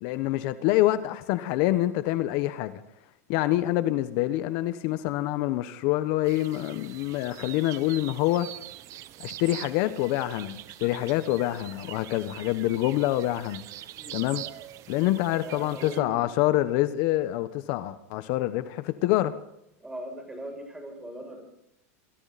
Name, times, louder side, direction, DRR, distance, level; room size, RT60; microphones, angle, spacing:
voice 1, 0.0-2.8 3.3-8.5 9.2-13.6 14.1-14.4 14.9-19.3, left 15 dB, 55° left, 11 dB, 1.2 m, -26 dB
sound 1, 6.2-16.0, right 14 dB, 40° right, 1.3 m, -43 dB
voice 2, 14.0-14.3 15.4-16.3 19.8-21.5, right 1 dB, 10° right, 4 dB, 7.6 m, -40 dB
28.0 x 23.0 x 4.3 m, 0.83 s
supercardioid pair, 125°, 8 cm